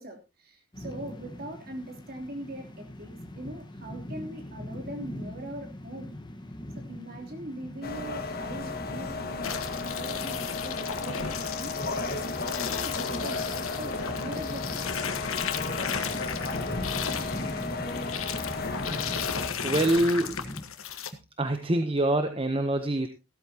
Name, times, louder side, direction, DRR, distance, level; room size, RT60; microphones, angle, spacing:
voice 1, 0.0-6.2 6.7-14.8, right 1 dB, 45° right, 2 dB, 3.3 m, -41 dB
sound 1, 0.7-20.7, left 1 dB, 20° left, 1.3 m, -41 dB
sound 2, 7.8-19.5, left 3 dB, 45° left, 1.8 m, -34 dB
sound 3, 9.4-21.1, left 7 dB, 75° left, 1.4 m, -35 dB
voice 2, 19.6-20.4 21.4-23.1, right 1 dB, 25° right, 8 dB, 0.9 m, -25 dB
16.0 x 13.0 x 2.9 m, 0.28 s
head